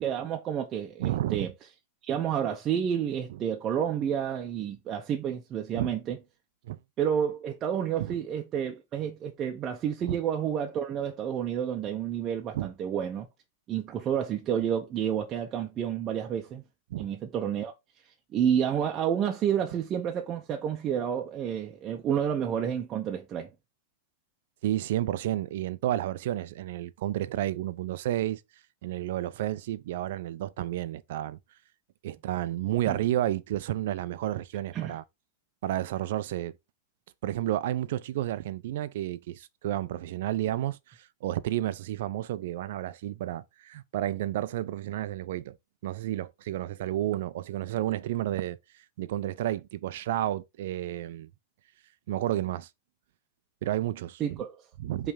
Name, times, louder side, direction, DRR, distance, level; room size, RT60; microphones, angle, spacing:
voice 1, 0.0-1.5 2.0-6.2 7.0-13.3 13.7-16.6 17.0-17.7 18.0-23.5 32.8-33.0 34.7-35.0 54.2-54.6 55.0-55.1, right 9 dB, 30° right, 0.9 m, -30 dB
voice 2, 1.0-1.5 5.7-5.9 6.6-6.8 8.0-8.2 10.0-10.2 12.5-12.7 16.9-17.1 24.6-28.4 28.8-31.4 32.0-35.0 35.6-36.5 37.2-45.6 45.8-48.6 49.0-51.3 52.1-52.7 53.6-54.4 54.8-55.1, right 13 dB, 65° right, 0.6 m, -31 dB
5.6 x 3.5 x 5.1 m
supercardioid pair, 140°, 0 cm